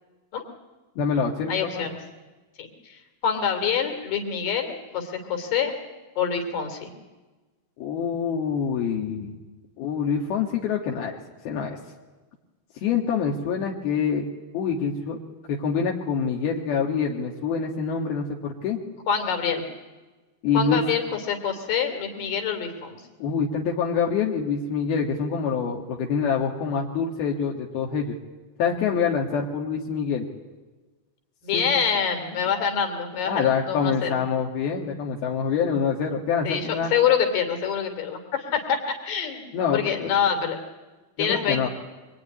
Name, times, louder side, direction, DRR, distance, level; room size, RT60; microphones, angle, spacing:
voice 1, 1.0-1.9 7.8-9.4 9.8-11.2 11.5-11.8 12.8-14.3 14.5-15.2 15.5-18.8 20.4-20.8 23.2-28.2 28.6-30.3 31.5-31.7 32.6-32.7 33.3-36.9 39.5-40.1 41.2-41.7, left 6 dB, 80° left, -1 dB, 3.6 m, -26 dB
voice 2, 1.5-2.0 2.6-5.7 6.2-6.9 19.1-19.6 20.5-23.0 31.4-34.1 36.4-40.6 41.2-41.7, left 7 dB, 65° left, 6 dB, 4.4 m, -26 dB
24.5 x 22.5 x 9.7 m, 1.2 s
omnidirectional pair, 4.3 m